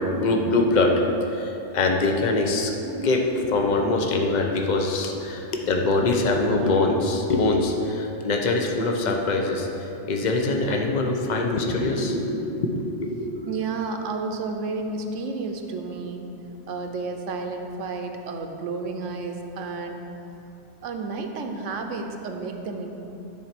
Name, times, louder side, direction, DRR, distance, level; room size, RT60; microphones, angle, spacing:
voice 1, 0.0-2.7 3.0-13.3, left 2 dB, 40° left, 2 dB, 0.9 m, -23 dB
voice 2, 2.8-3.1 13.5-16.3 16.7-20.0 20.8-22.9, right 4 dB, 85° right, 4 dB, 1.1 m, -31 dB
10.5 x 4.4 x 5.9 m, 2.9 s
omnidirectional pair, 1.2 m